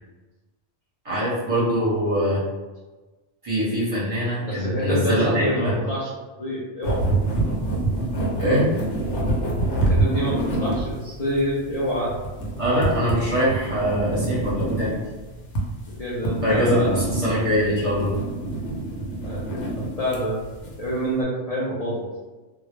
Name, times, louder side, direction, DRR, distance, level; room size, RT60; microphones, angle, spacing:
voice 1, 1.0-2.4 3.4-5.8 8.4-8.7 12.6-14.9 16.4-18.1, equal, 35° right, -9 dB, 0.8 m, -23 dB
voice 2, 4.4-6.1 6.4-7.1 9.7-12.1 16.0-17.0 19.2-20.4 20.8-22.1, equal, 50° left, -7 dB, 0.4 m, -27 dB
sound 1, 6.8-21.1, right 2 dB, 80° left, 0.9 m, -27 dB
2.2 x 2.0 x 3.0 m, 1.2 s
omnidirectional pair, 1.2 m